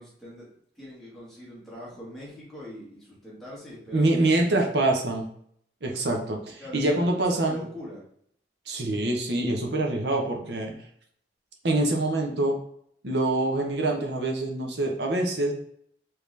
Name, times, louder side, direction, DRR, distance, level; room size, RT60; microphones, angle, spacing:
voice 1, 0.0-4.6 6.6-8.0, left 1 dB, ahead, -7 dB, 1.6 m, -43 dB
voice 2, 3.9-5.3 5.8-7.6 8.7-10.7 11.6-12.6 13.0-15.5, right 2 dB, 70° right, 1 dB, 0.9 m, -25 dB
5.1 x 3.1 x 3.3 m, 0.67 s
head